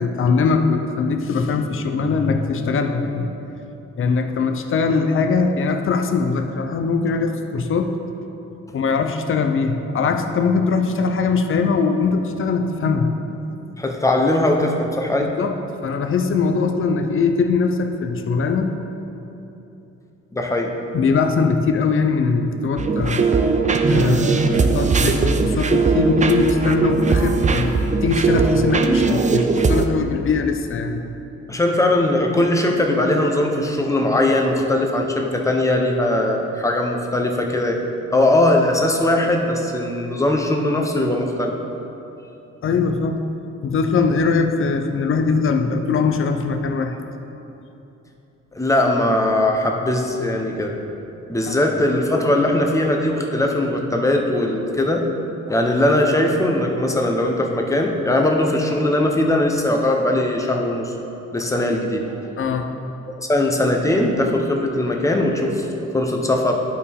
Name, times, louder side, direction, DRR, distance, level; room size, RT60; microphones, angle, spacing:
voice 1, 0.0-3.3 4.0-8.0 8.7-13.1 15.2-18.7 20.9-23.3 23.9-27.7 28.0-31.0 42.6-43.2 43.6-46.9 51.5-51.6 62.4-62.7, left 4 dB, 45° left, 5 dB, 0.6 m, -21 dB
voice 2, 13.8-15.3 20.3-20.7 31.5-37.8 38.1-41.6 48.5-50.8 51.3-55.1 55.5-60.9 61.3-62.1 63.3-66.6, left 1 dB, 10° left, 2 dB, 0.9 m, -20 dB
sound 1, 22.8-29.9, right 4 dB, 25° right, 0.5 m, -19 dB
11.5 x 4.5 x 3.5 m, 2.9 s
cardioid pair, 90°, 30 cm